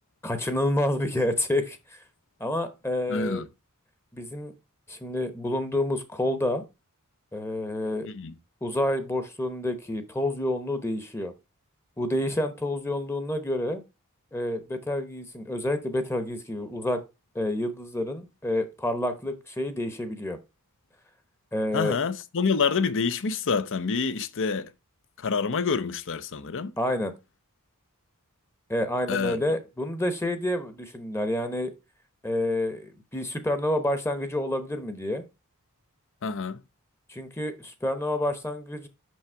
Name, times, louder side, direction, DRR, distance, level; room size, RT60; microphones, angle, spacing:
voice 1, 0.2-2.0 2.4-3.4 4.1-4.5 4.9-6.6 7.3-8.1 8.6-11.3 12.0-13.8 14.3-17.0 17.3-20.4 21.5-22.0 26.8-27.1 28.7-31.7 32.2-35.2 37.1-38.9, left 1 dB, 10° left, 0.9 m, -28 dB
voice 2, 3.1-3.4 8.0-8.3 21.7-24.7 25.2-26.7 29.1-29.4 36.2-36.6, left 5 dB, 60° left, 0.7 m, -27 dB
6.3 x 5.8 x 4.5 m
head